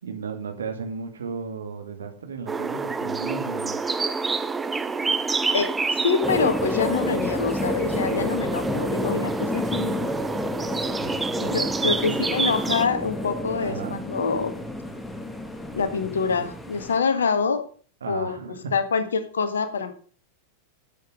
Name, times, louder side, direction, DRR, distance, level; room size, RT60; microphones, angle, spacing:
voice 1, 0.0-3.8 11.0-11.5 12.0-12.2 13.6-14.0 18.0-18.7, right 5 dB, 70° right, 5 dB, 2.2 m, -34 dB
sound 1, 2.5-12.9, right 4 dB, 10° right, 0.8 m, -28 dB
voice 2, 6.0-10.1 11.5-14.5 15.7-17.6 18.1-19.9, left 5 dB, 70° left, 9 dB, 1.7 m, -25 dB
sound 2, 6.2-17.0, left 1 dB, 5° left, 1.6 m, -30 dB
12.0 x 8.2 x 5.1 m, 0.42 s
figure-of-eight pair, 90°, 0 cm